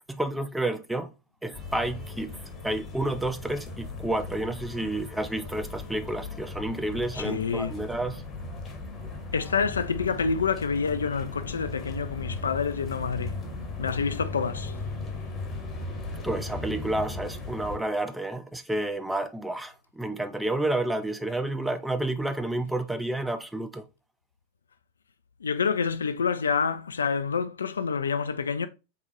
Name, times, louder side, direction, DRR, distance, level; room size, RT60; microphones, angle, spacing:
voice 1, 0.1-1.1 1.4-2.3 2.6-8.2 16.2-23.8, right 1 dB, 5° right, 0.4 m, -30 dB
sound 1, 1.5-17.8, left 3 dB, 25° left, 1.0 m, -37 dB
voice 2, 7.1-7.8 9.3-13.4 13.8-14.7 25.4-28.7, left 5 dB, 70° left, 0.3 m, -28 dB
3.8 x 3.4 x 3.0 m
figure-of-eight pair, 90°, 0 cm